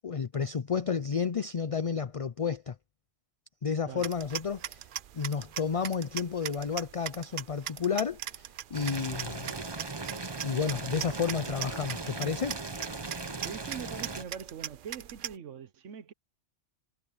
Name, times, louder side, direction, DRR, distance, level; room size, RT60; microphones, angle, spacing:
voice 1, 0.0-2.7 3.6-4.9 5.1-9.5 10.4-12.6, left 6 dB, 40° left, 0.5 m, -31 dB
sound 1, 4.0-15.3, right 10 dB, 55° right, 0.6 m, -41 dB
Boiling, 8.7-14.2, right 3 dB, 25° right, 0.9 m, -38 dB
voice 2, 13.4-16.1, right 8 dB, 80° right, 1.3 m, -42 dB
omnidirectional pair, 1.2 m